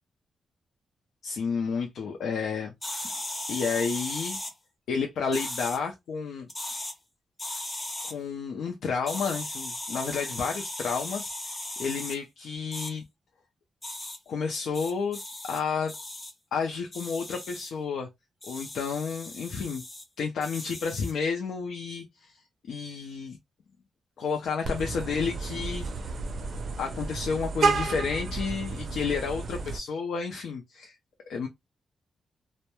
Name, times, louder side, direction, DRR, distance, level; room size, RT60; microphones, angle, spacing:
voice 1, 1.2-2.7 3.5-4.4 4.9-6.5 8.0-11.3 11.8-13.0 14.3-15.2 15.4-15.9 16.5-18.1 18.5-19.8 20.2-22.4 22.7-23.4 24.2-25.9 26.8-30.9 31.3-31.5, left 5 dB, 80° left, 0.4 m, -31 dB
sound 1, 2.8-4.5 5.3-5.8 6.5-6.9 7.4-8.1 9.1-12.2 12.7-12.9 13.8-14.2 14.7-15.6 15.9-16.3 16.9-17.7 18.4-20.0 20.4-21.2, left 1 dB, 20° left, 0.5 m, -37 dB
Vehicle horn car horn honking, 24.6-29.8, right 4 dB, 50° right, 0.5 m, -31 dB
2.2 x 2.0 x 2.9 m
wide cardioid pair, 180°, 0 cm